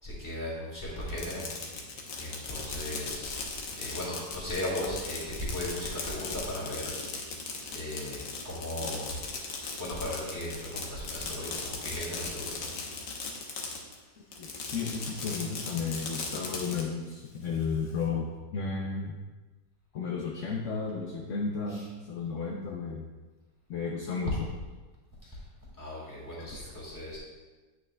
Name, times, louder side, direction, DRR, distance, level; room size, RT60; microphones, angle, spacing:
voice 1, 0.0-1.5 2.2-9.2 9.8-12.7 21.7-21.9 25.2-25.4 25.8-27.2, left 1 dB, 10° left, -6 dB, 2.0 m, -37 dB
Fireworks, 1.0-14.0 14.3-16.8, left 4 dB, 80° left, 1.6 m, -38 dB
voice 2, 14.4-19.2 19.9-23.1 23.7-24.3 26.4-26.7, left 5 dB, 65° left, 0 dB, 0.8 m, -33 dB
8.6 x 7.1 x 2.2 m, 1.3 s
omnidirectional pair, 1.8 m